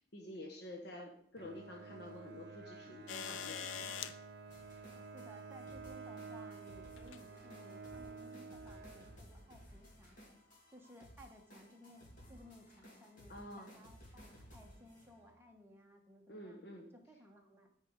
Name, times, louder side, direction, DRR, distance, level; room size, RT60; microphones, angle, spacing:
voice 1, 0.0-3.9 13.3-13.7 16.3-16.9, left 1 dB, 60° left, 1 dB, 1.1 m, -49 dB
Bowed string instrument, 1.4-9.6, right 4 dB, 55° right, 0.6 m, -51 dB
sound 1, 3.1-4.1 5.5-5.6 7.0-7.2 8.2-8.3, left 8 dB, 85° left, 0.5 m, -43 dB
sound 2, 4.5-15.4, equal, 40° left, 2.5 m, -58 dB
voice 2, 5.1-10.2 10.7-16.6 16.9-17.7, equal, 10° right, 1 dB, 1.1 m, -59 dB
9.3 x 4.8 x 5.2 m, 0.67 s
head